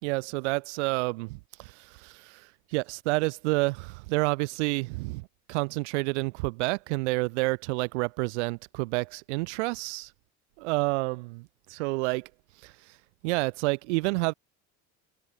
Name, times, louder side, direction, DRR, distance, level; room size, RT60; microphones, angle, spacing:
voice 1, 0.0-10.1 10.6-12.3 12.6-12.7 13.2-14.3, right 26 dB, 85° right, 5.1 m, -29 dB
supercardioid pair, 95°, 34 cm